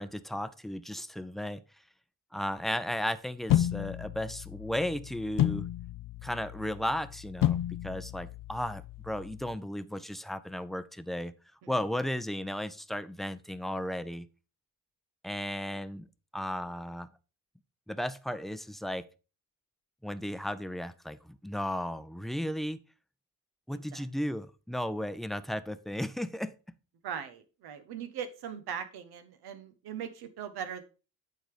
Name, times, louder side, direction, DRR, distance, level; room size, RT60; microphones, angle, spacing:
voice 1, 0.0-1.6 2.3-5.7 6.2-11.3 11.7-14.3 15.2-16.1 16.3-17.1 17.9-19.1 20.0-22.8 23.7-26.5, equal, ahead, 0.6 m, -35 dB
sound 1, 3.5-9.6, left 12 dB, 60° left, 0.5 m, -32 dB
voice 2, 23.7-24.0 27.0-30.8, right 8 dB, 80° right, 1.2 m, -40 dB
9.0 x 4.0 x 4.9 m
cardioid pair, 70°, 38 cm